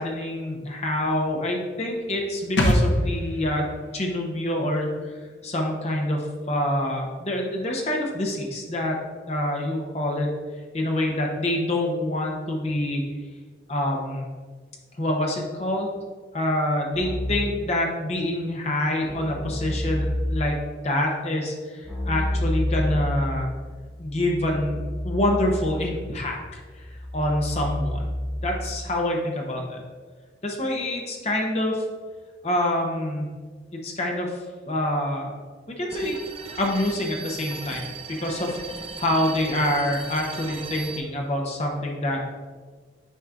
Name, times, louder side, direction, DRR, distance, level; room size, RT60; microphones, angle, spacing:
voice 1, 0.0-3.7 3.9-4.9 5.4-9.0 9.3-10.3 10.7-13.0 13.7-14.3 15.0-15.9 16.3-20.6 20.8-23.5 24.0-26.6 27.1-28.1 28.4-29.8 30.4-31.8 32.4-33.3 33.7-34.3 34.7-35.3 35.7-36.1 36.6-42.2, left 1 dB, 35° left, 0 dB, 0.9 m, -26 dB
sound 1, 2.6-6.1 6.3-6.4, left 1 dB, 70° left, 0.8 m, -27 dB
Keyboard (musical), 16.9-17.6 19.0-20.6 21.8-28.9, left 1 dB, 5° left, 1.4 m, -30 dB
sound 2, 35.9-41.0, right 4 dB, 30° right, 0.5 m, -37 dB
9.1 x 4.3 x 2.5 m, 1.5 s
head